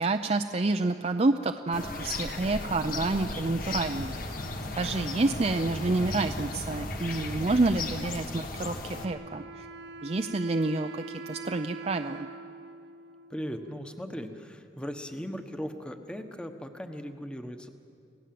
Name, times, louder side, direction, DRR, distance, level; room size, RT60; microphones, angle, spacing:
voice 1, 0.0-4.4 4.8-9.7 10.0-12.3, right 2 dB, 35° right, 6 dB, 0.5 m, -28 dB
sound 1, 1.7-9.1, left 2 dB, 50° left, 1.6 m, -35 dB
Wind instrument woodwind instrument, 8.8-14.3, right 3 dB, 75° right, 0.9 m, -44 dB
voice 2, 13.3-17.7, equal, 5° left, 6 dB, 1.1 m, -38 dB
28.0 x 17.5 x 7.7 m, 2.5 s
head